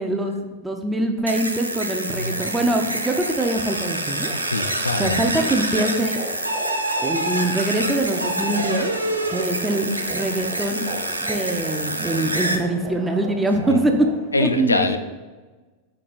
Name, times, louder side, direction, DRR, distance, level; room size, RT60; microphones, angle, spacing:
voice 1, 0.0-4.3 5.0-6.2 7.0-8.9 9.3-10.8 11.2-13.9 14.4-14.9, right 2 dB, 10° right, 4 dB, 0.4 m, -24 dB
sound 1, 1.3-12.6, right 1 dB, 85° right, 0.4 m, -27 dB
voice 2, 2.1-2.7 4.4-5.2 14.3-15.0, left 3 dB, 80° left, 8 dB, 0.3 m, -24 dB
sound 2, 2.1-14.3, right 2 dB, 40° right, 1.2 m, -38 dB
sound 3, 7.6-13.0, right 1 dB, 65° left, 0.9 m, -41 dB
4.4 x 3.0 x 4.0 m, 1.3 s
figure-of-eight pair, 90°, 0 cm